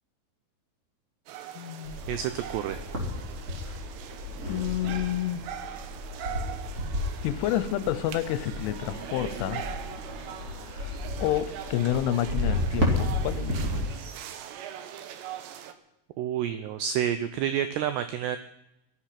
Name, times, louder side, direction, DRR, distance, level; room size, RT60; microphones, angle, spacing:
sound 1, 1.3-15.7, right 10 dB, 75° right, 2.9 m, -42 dB
voice 1, 1.6-2.0 4.5-5.4 7.2-9.6 10.8-14.1, left 12 dB, 80° left, 14 dB, 3.2 m, -29 dB
sound 2, 1.8-13.8, left 1 dB, 20° right, 3.1 m, -33 dB
voice 2, 2.1-2.9 16.2-18.4, right 10 dB, 90° right, 10 dB, 2.4 m, -29 dB
Laughter, 8.1-13.9, right 3 dB, 55° right, 5.8 m, -46 dB
18.0 x 13.5 x 5.9 m, 0.85 s
omnidirectional pair, 5.6 m